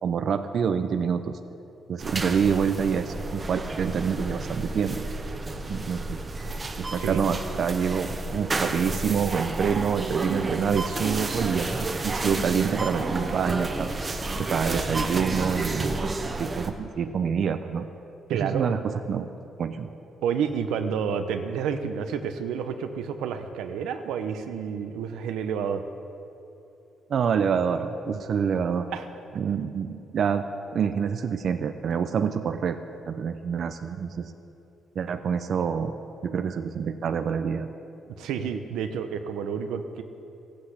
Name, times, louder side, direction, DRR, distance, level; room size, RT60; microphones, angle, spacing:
voice 1, 0.0-1.4 1.9-5.0 5.7-6.2 6.8-13.9 14.4-16.0 16.4-17.9 18.4-19.3 19.6-19.9 27.1-28.9 29.3-30.4 30.7-32.8 33.1-34.3 34.9-35.9 36.2-37.7, right 7 dB, 60° right, 8 dB, 0.6 m, -27 dB
sound 1, 2.0-16.7, right 2 dB, 30° right, 1.2 m, -31 dB
voice 2, 18.3-18.7 20.2-25.8 28.9-29.1 38.2-40.0, right 7 dB, 90° right, 7 dB, 0.9 m, -29 dB
15.0 x 8.6 x 8.1 m, 2.8 s
cardioid pair, 90°, 0 cm